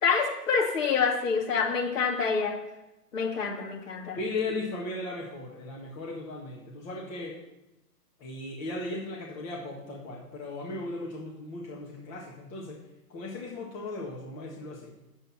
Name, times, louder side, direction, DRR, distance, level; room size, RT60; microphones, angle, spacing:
voice 1, 0.0-2.6 3.1-4.2, left 5 dB, 50° left, 0 dB, 2.9 m, -27 dB
voice 2, 4.2-7.4 8.2-12.8 13.1-14.9, left 2 dB, 25° left, -3 dB, 1.7 m, -37 dB
9.3 x 8.0 x 5.8 m, 0.92 s
hypercardioid pair, 140°, 48 cm